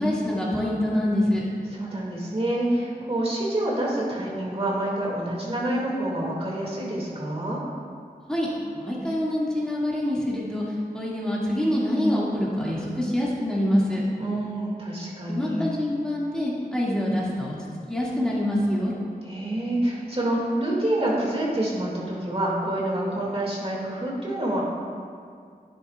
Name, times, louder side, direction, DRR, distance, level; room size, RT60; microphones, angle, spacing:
voice 1, 0.0-1.4 8.3-14.0 15.3-17.6 17.9-18.9, left 1 dB, 5° left, -7 dB, 2.0 m, -25 dB
voice 2, 1.7-7.6 14.2-15.7 19.2-24.6, right 1 dB, 40° right, -4 dB, 2.1 m, -27 dB
11.0 x 9.8 x 2.3 m, 2.1 s
wide cardioid pair, 60°, 16 cm